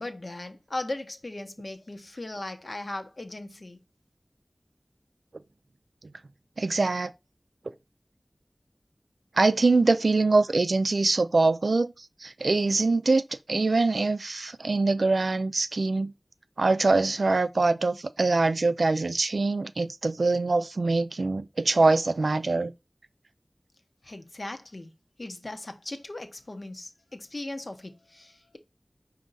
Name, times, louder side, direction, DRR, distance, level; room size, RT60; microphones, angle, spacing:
voice 1, 0.0-3.8 24.0-24.9 25.2-28.6, left 2 dB, 60° left, 0.8 m, -38 dB
voice 2, 6.6-7.1 9.4-11.9 12.2-13.2 13.5-16.1 16.6-22.7, right 3 dB, 90° right, 0.3 m, -23 dB
5.1 x 2.7 x 3.8 m
wide cardioid pair, 40°, 0 cm